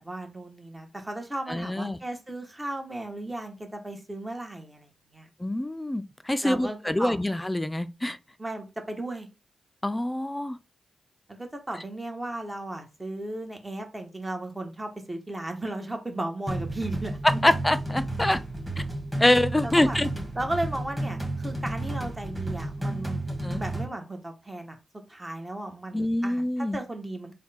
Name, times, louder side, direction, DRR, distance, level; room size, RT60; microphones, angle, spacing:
voice 1, 0.0-5.3 6.4-7.2 8.4-9.3 11.3-17.2 19.6-20.0 20.3-23.2 23.5-24.8 25.1-27.3, right 1 dB, 20° right, 1.1 m, -35 dB
voice 2, 1.5-2.0 5.4-8.2 9.8-10.6 17.4-18.4 19.2-20.1 23.4-23.6 25.9-26.8, left 1 dB, 15° left, 0.4 m, -25 dB
sound 1, 16.5-23.9, right 1 dB, 5° right, 1.5 m, -32 dB
3.5 x 2.2 x 4.2 m
supercardioid pair, 45°, 0 cm